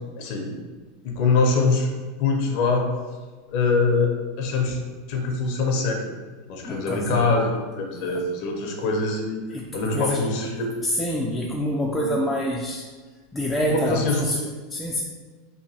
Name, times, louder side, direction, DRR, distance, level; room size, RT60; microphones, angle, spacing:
voice 1, 0.2-0.5 1.0-1.9 2.2-2.9 3.5-4.8 5.1-6.1 6.5-9.4 9.7-10.7 12.0-12.2 13.7-14.2, left 3 dB, 60° left, 2 dB, 0.5 m, -23 dB
voice 2, 6.6-7.3 7.9-8.2 9.5-10.3 10.8-12.9 13.3-15.0, equal, 10° left, -3 dB, 0.3 m, -27 dB
2.8 x 2.5 x 2.7 m, 1.4 s
hypercardioid pair, 105°, 0 cm